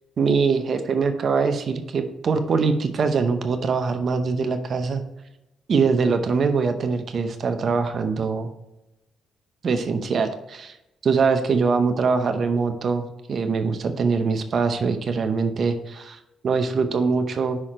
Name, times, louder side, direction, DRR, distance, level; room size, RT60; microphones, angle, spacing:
voice 1, 0.2-5.0 5.7-8.5 9.6-10.8 11.0-17.6, right 5 dB, 50° right, 8 dB, 0.7 m, -23 dB
5.8 x 4.8 x 4.3 m, 0.90 s
cardioid pair, 90°, 0 cm